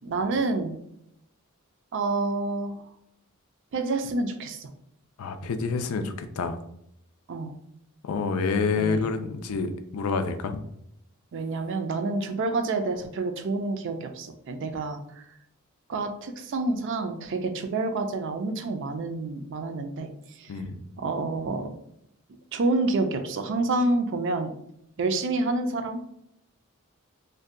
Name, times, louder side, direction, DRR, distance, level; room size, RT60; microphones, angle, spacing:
voice 1, 0.0-0.7 1.9-2.8 3.7-4.7 7.3-7.6 8.7-9.2 11.3-15.2 15.9-20.5 21.0-21.7 22.5-24.5 25.0-26.0, right 3 dB, 60° right, 6 dB, 0.4 m, -28 dB
voice 2, 5.2-6.6 8.0-10.6 20.5-20.8, left 4 dB, 90° left, 8 dB, 0.4 m, -28 dB
2.6 x 2.2 x 3.6 m, 0.75 s
head